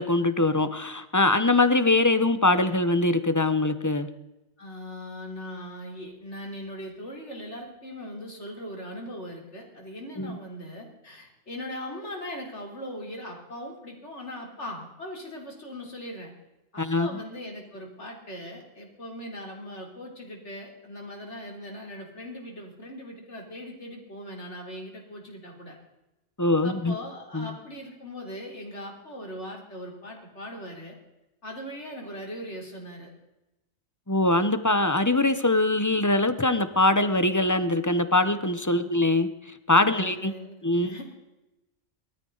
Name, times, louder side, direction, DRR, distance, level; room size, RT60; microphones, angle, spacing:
voice 1, 0.0-4.1 10.2-10.4 16.8-17.1 26.4-26.9 27.3-27.5 34.1-39.3 39.7-40.3 40.6-40.9, left 2 dB, 15° left, 11 dB, 0.7 m, -22 dB
voice 2, 4.6-16.3 16.7-25.8 26.6-31.0 31.4-33.1 38.7-38.9 39.8-41.0, equal, 60° left, 1 dB, 3.8 m, -40 dB
19.5 x 13.5 x 4.0 m, 0.98 s
omnidirectional pair, 1.3 m